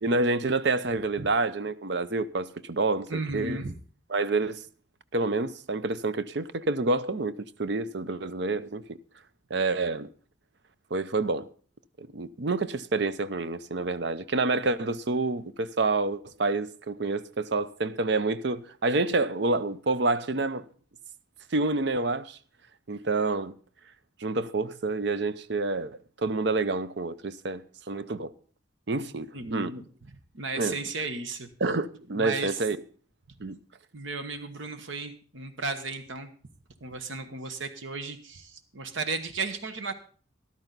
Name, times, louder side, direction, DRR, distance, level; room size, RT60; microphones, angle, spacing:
voice 1, 0.0-3.6 4.1-4.6 5.1-8.8 9.5-10.1 10.9-11.5 12.0-20.6 21.5-22.4 22.9-23.5 24.2-28.3 28.9-29.7 30.6-30.8 31.6-32.8 33.4-33.6, right 3 dB, 60° right, 0.6 m, -28 dB
voice 2, 3.1-3.7 29.3-29.8 30.3-31.5 32.1-32.6 33.9-36.3 36.8-39.9, right 3 dB, 75° right, 1.2 m, -34 dB
13.5 x 12.0 x 4.0 m
head